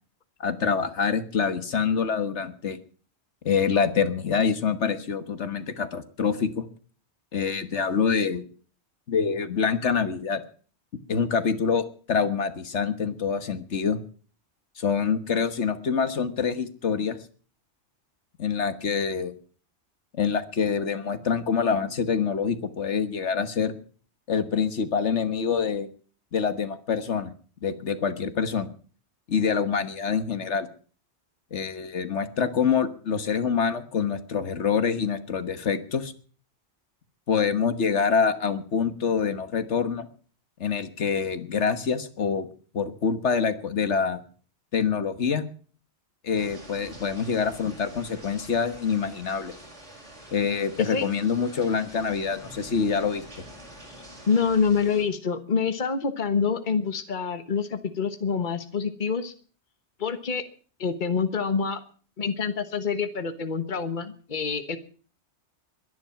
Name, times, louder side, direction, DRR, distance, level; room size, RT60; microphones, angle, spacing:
voice 1, 0.4-2.8 3.4-6.6 7.3-8.5 9.1-10.4 11.1-14.0 14.8-17.2 18.4-19.3 20.1-23.7 24.3-25.9 26.3-27.3 27.6-28.7 29.3-30.7 31.5-36.1 37.3-40.1 40.6-42.5 42.7-44.2 44.7-45.4 46.2-49.5 50.3-53.2, left 6 dB, 80° left, 10 dB, 1.6 m, -26 dB
sound 1, 46.3-55.0, right 1 dB, 90° right, 6.6 m, -46 dB
voice 2, 54.3-59.3 60.0-60.4 60.8-61.8 62.2-64.8, left 5 dB, 45° left, 9 dB, 1.4 m, -26 dB
22.0 x 10.5 x 5.8 m, 0.43 s
omnidirectional pair, 1.2 m